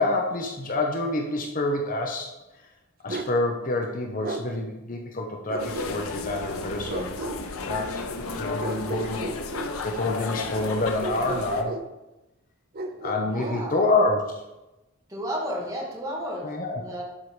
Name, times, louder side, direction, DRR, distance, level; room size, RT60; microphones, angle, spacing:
voice 1, 0.0-2.3 3.0-7.2 7.7-8.0 8.3-9.3 9.8-11.8 13.0-14.3 16.4-16.8, left 2 dB, 40° left, 2 dB, 0.9 m, -27 dB
Bark, 3.1-3.4 4.2-4.5 5.5-6.2 6.9-7.4 8.6-9.7 11.0-11.9 12.7-13.6, right 2 dB, 45° right, 0.7 m, -34 dB
sound 1, 5.6-11.6, left 3 dB, 90° left, 0.8 m, -33 dB
voice 2, 13.2-13.8 15.1-16.5 16.8-17.0, equal, 15° right, -4 dB, 2.4 m, -32 dB
11.5 x 4.8 x 4.9 m, 1.0 s
head